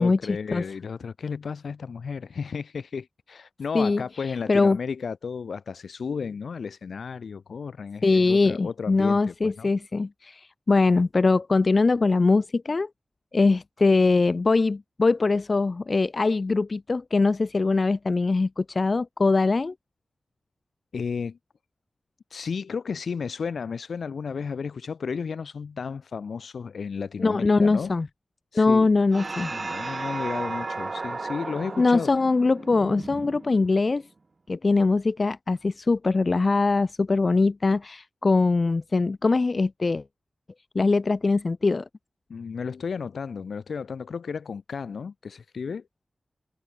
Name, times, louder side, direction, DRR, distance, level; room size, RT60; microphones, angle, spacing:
voice 1, 0.0-9.7 20.9-21.4 22.3-27.9 28.5-28.9 29.4-32.1 42.3-45.8, left 5 dB, 85° left, 0.6 m, -33 dB
voice 2, 8.0-12.9 13.3-19.7 27.2-28.1 28.5-29.5 29.8-29.9 31.8-34.0 34.5-40.0 40.7-41.8, left 3 dB, 45° left, 0.3 m, -22 dB
sound 1, 29.1-33.9, right 3 dB, 45° right, 1.0 m, -34 dB
wide cardioid pair, 85°, 0 cm